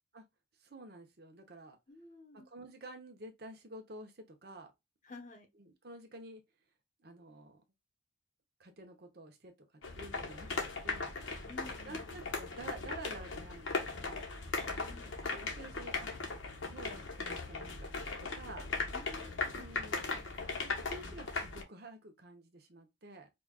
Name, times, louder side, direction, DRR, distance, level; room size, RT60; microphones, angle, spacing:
voice 1, 0.6-1.8 2.3-4.7 5.6-6.4 7.0-7.6 8.6-9.5 10.0-11.2 11.8-14.2 15.2-16.1 16.7-17.9 18.2-18.7 19.5-20.2 20.6-23.3, right 2 dB, 50° right, 0.8 m, -50 dB
voice 2, 1.9-2.5 5.0-5.5 11.5-12.0 14.7-15.2 18.9-19.7, left 2 dB, 40° left, 0.9 m, -52 dB
sound 1, 9.8-21.6, left 3 dB, 80° left, 1.1 m, -38 dB
5.0 x 2.4 x 2.3 m
head